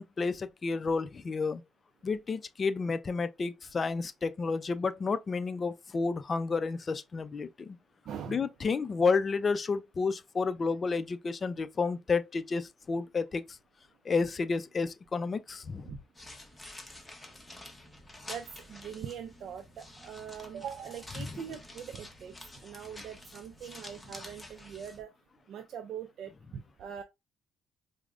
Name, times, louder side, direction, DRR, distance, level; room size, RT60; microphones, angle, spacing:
voice 1, 0.0-1.6 2.0-7.8 8.3-13.6 14.0-15.9 21.2-21.4, left 4 dB, 35° left, 0.4 m, -31 dB
voice 2, 8.1-8.4 15.9-16.0 18.3-25.1 25.5-27.0, right 8 dB, 65° right, 0.4 m, -42 dB
sound 1, 16.1-25.0, left 1 dB, 10° left, 0.9 m, -49 dB
4.7 x 2.1 x 2.4 m
cardioid pair, 90°, 0 cm